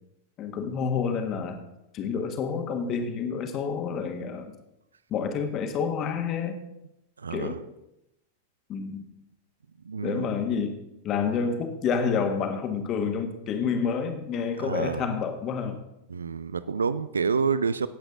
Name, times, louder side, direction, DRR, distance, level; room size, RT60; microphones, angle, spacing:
voice 1, 0.4-1.6 1.9-4.5 5.1-6.6 7.3-7.6 8.7-9.0 10.0-10.7 11.0-15.8, left 6 dB, 35° left, 6 dB, 1.6 m, -28 dB
voice 2, 7.2-7.6 9.8-10.3 14.6-15.1 16.1-17.9, right 5 dB, 75° right, 16 dB, 0.5 m, -28 dB
17.5 x 8.1 x 3.8 m, 0.88 s
figure-of-eight pair, 90°, 0 cm